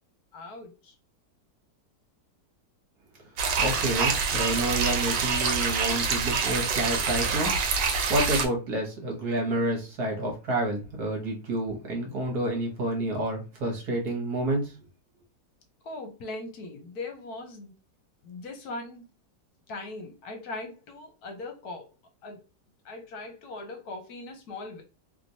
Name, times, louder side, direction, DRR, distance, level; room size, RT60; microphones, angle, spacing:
voice 1, 0.3-0.9 15.8-17.7 18.2-19.1 19.7-21.9 22.2-22.4 22.8-24.8, left 2 dB, 70° left, 1.2 m, -40 dB
sound 1, 3.4-8.5, right 5 dB, 85° right, 1.3 m, -26 dB
voice 2, 3.6-7.5 8.1-14.7, right 1 dB, 65° right, 1.6 m, -29 dB
3.1 x 2.9 x 2.6 m
omnidirectional pair, 1.8 m